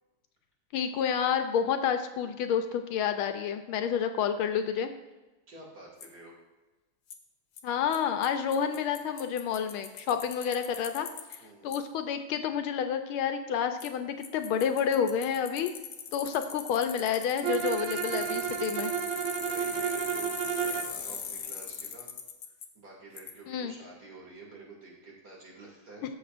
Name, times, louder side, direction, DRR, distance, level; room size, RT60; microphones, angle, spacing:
voice 1, 0.7-4.9 7.6-11.1 11.6-15.7 16.1-18.9 23.5-23.7, left 8 dB, 80° left, 7 dB, 1.4 m, -29 dB
voice 2, 5.5-6.3 11.4-11.7 16.2-16.6 19.3-22.1 22.4-26.0, right 3 dB, 50° right, -3 dB, 3.0 m, -49 dB
Bicycle, 6.0-6.1 7.1-7.2 7.6-7.7 7.9-8.0 8.2-8.3 8.5-11.4 11.7-11.8 13.8-13.9 14.2-22.7 23.2-23.3, left 7 dB, 65° left, 0.8 m, -40 dB
Bowed string instrument, 17.4-21.0, right 9 dB, 75° right, 1.2 m, -31 dB
14.0 x 6.7 x 2.5 m, 1.1 s
omnidirectional pair, 2.4 m